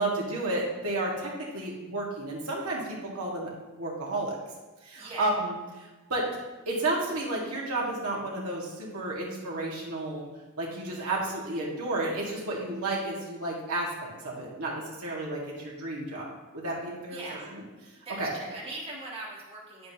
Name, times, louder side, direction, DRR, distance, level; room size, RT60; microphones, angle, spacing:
voice 1, 0.0-3.5 3.8-4.3 4.8-5.6 6.1-6.3 6.7-10.2 10.6-17.6 18.2-18.3, right 2 dB, 80° right, -4 dB, 2.0 m, -32 dB
voice 2, 5.0-5.3 17.1-17.5 18.0-19.9, right 2 dB, 25° right, -5 dB, 1.6 m, -40 dB
9.4 x 7.5 x 3.0 m, 1.2 s
head